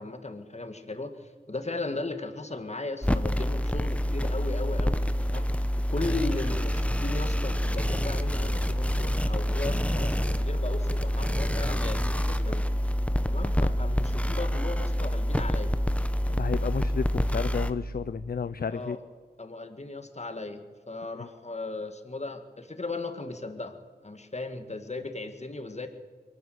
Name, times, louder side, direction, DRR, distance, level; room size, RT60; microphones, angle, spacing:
voice 1, 0.0-5.5 5.9-12.7 13.2-15.7 18.7-19.0 19.4-25.9, left 2 dB, 40° left, 7 dB, 2.1 m, -37 dB
sound 1, 3.0-17.7, equal, 5° left, 1.2 m, -27 dB
voice 2, 16.3-19.0 21.2-21.3, left 6 dB, 60° left, 14 dB, 0.6 m, -32 dB
22.5 x 13.0 x 9.6 m, 1.5 s
cardioid pair, 40°, 18 cm